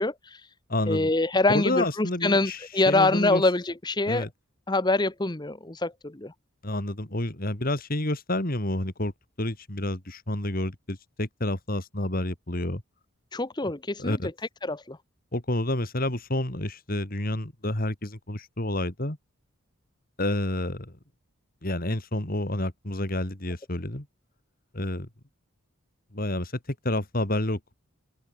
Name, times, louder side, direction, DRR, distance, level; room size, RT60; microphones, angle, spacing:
voice 1, 0.0-0.5 0.9-4.3 4.7-6.3 13.3-14.3 14.6-15.0, left 2 dB, 20° left, 0.9 m, -25 dB
voice 2, 0.7-1.1 1.5-2.6 2.9-3.4 4.1-4.3 6.6-9.1 9.4-12.8 14.0-14.3 15.3-19.2 20.2-20.9 21.6-24.1 24.7-25.1 26.1-26.5 26.8-27.7, left 1 dB, 40° left, 2.6 m, -29 dB
open air
head